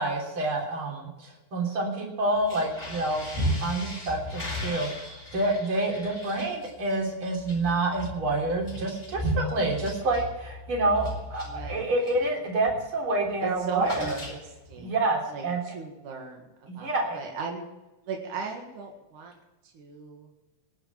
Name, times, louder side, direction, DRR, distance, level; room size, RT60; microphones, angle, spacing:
voice 1, 0.0-3.3 3.6-4.9 5.3-14.2 14.8-15.6 16.7-17.2, right 2 dB, 45° right, -1 dB, 4.2 m, -28 dB
sound 1, 2.3-12.3 12.6-12.9 13.2-14.8, equal, 10° left, 3.9 m, -35 dB
voice 2, 11.5-11.9 13.4-15.0 15.3-17.7 18.0-19.4 19.6-20.3, right 5 dB, 80° right, 1 dB, 3.4 m, -38 dB
20.5 x 7.2 x 7.2 m, 1.0 s
omnidirectional pair, 3.4 m